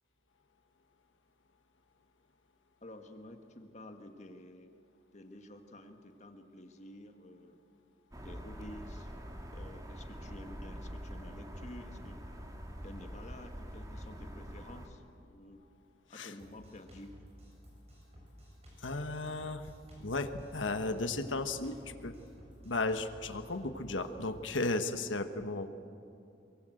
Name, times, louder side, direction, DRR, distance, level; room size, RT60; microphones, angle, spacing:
voice 1, 2.8-4.7 5.1-7.6 8.2-9.1 9.5-12.2 12.8-15.7 16.1-17.1, left 1 dB, 40° left, 6 dB, 1.6 m, -51 dB
sound 1, 8.1-14.9, equal, 20° right, 1.9 m, -45 dB
Drum kit, 16.4-24.3, equal, 35° right, 7.5 m, -55 dB
voice 2, 18.8-19.6 20.0-22.1 22.6-25.7, left 2 dB, 85° left, 8 dB, 1.4 m, -35 dB
23.5 x 23.0 x 7.9 m, 2.6 s
head